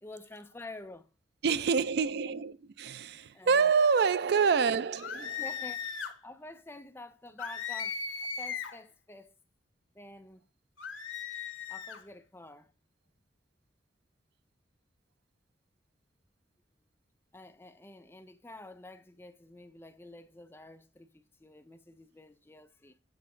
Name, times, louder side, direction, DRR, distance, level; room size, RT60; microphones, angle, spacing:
voice 1, 0.0-1.1 3.3-3.7 5.2-5.9 6.2-9.3 9.9-10.4 11.7-12.7 17.3-23.0, left 2 dB, 10° left, 0.4 m, -49 dB
voice 2, 1.4-5.4, right 5 dB, 60° right, 0.4 m, -27 dB
sound 1, 5.0-6.2 7.4-8.8 10.8-12.0, left 6 dB, 85° left, 1.0 m, -37 dB
7.8 x 4.7 x 3.7 m
head